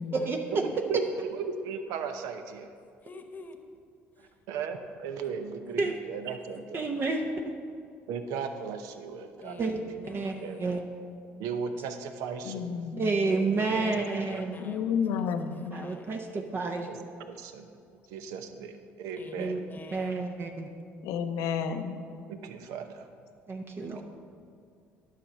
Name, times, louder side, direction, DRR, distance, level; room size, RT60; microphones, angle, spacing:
voice 1, 0.0-0.8 3.0-3.6 4.2-4.3 6.5-6.6 9.4-10.9 13.2-15.3 15.7-16.3 19.2-20.3 23.8-24.0, left 2 dB, 30° left, 7 dB, 1.0 m, -46 dB
voice 2, 0.5-2.7 4.2-6.8 8.1-9.6 10.4-10.6 11.4-12.8 13.7-14.4 16.6-17.7 17.9-19.6 22.3-23.1 23.8-24.0, right 6 dB, 75° right, 7 dB, 0.7 m, -37 dB
voice 3, 6.7-7.5 9.6-9.8 10.1-10.8 13.0-14.6 15.7-16.9 19.4-19.6 19.9-20.7 23.5-24.0, right 3 dB, 45° right, 3 dB, 0.8 m, -30 dB
voice 4, 12.4-13.1 14.6-15.9 21.0-22.0, left 7 dB, 75° left, 8 dB, 0.6 m, -31 dB
10.0 x 5.9 x 5.4 m, 2.3 s
hypercardioid pair, 65°, 6 cm